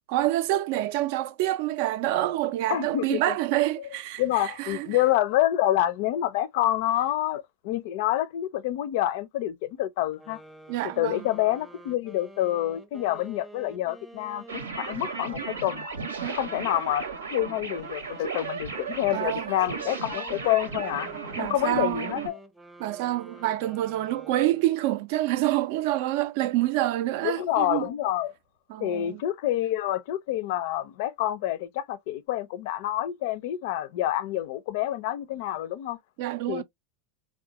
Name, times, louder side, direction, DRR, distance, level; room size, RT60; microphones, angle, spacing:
voice 1, 0.1-5.0 10.7-11.3 16.2-16.4 19.1-19.5 21.4-22.3 22.8-27.9 28.7-29.2 36.2-36.6, right 15 dB, 60° right, 0.4 m, -27 dB
voice 2, 2.7-3.4 4.2-10.4 10.8-15.9 16.3-17.1 17.3-22.4 27.2-28.3 28.8-36.0 36.5-36.6, left 13 dB, 60° left, 0.4 m, -27 dB
sound 1, 10.1-17.2 17.7-24.9, right 2 dB, 5° right, 0.7 m, -49 dB
sound 2, 14.5-22.3, right 5 dB, 85° right, 0.9 m, -35 dB
3.7 x 2.1 x 2.8 m
hypercardioid pair, 90°, 0 cm